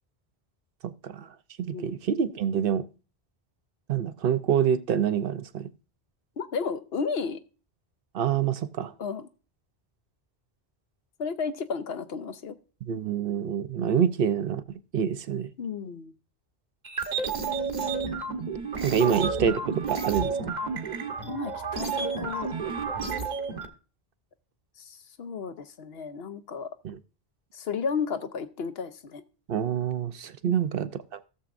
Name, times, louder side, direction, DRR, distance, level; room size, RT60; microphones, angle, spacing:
voice 1, 0.8-1.3 1.6-2.9 3.9-5.7 8.1-8.9 12.8-15.5 18.8-20.6 26.8-27.0 29.5-31.2, right 8 dB, 65° right, 0.8 m, -27 dB
voice 2, 6.4-7.4 9.0-9.3 11.2-12.6 15.6-16.1 19.0-19.1 19.4-19.6 21.2-22.5 24.8-26.7 27.5-29.2 30.5-30.7, left 5 dB, 75° left, 1.0 m, -33 dB
sound 1, 16.8-23.7, right 5 dB, 45° right, 1.1 m, -31 dB
15.5 x 7.1 x 2.5 m
omnidirectional pair, 1.1 m